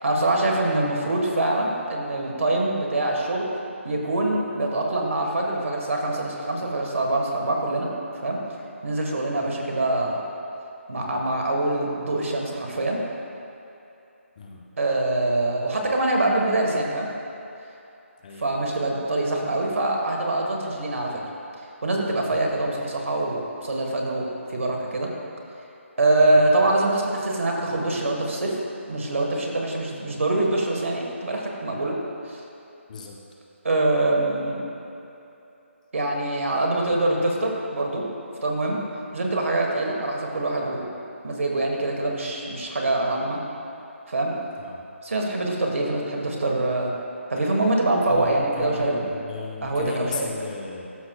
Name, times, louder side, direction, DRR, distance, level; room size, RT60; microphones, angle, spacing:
voice 1, 0.0-3.5 3.8-7.9 8.2-8.4 8.8-10.2 10.9-13.0 14.8-17.1 18.4-21.2 21.8-25.1 26.0-28.6 28.9-32.0 32.3-32.4 33.6-34.6 35.9-38.0 38.4-38.8 39.1-40.9 41.2-43.4 44.1-44.3 45.0-46.9 47.3-49.0 49.6-50.3, right 2 dB, 70° right, 0 dB, 1.4 m, -24 dB
voice 2, 48.1-50.9, left 4 dB, 35° left, 0 dB, 0.8 m, -35 dB
13.5 x 6.0 x 2.3 m, 2.9 s
figure-of-eight pair, 160°, 7 cm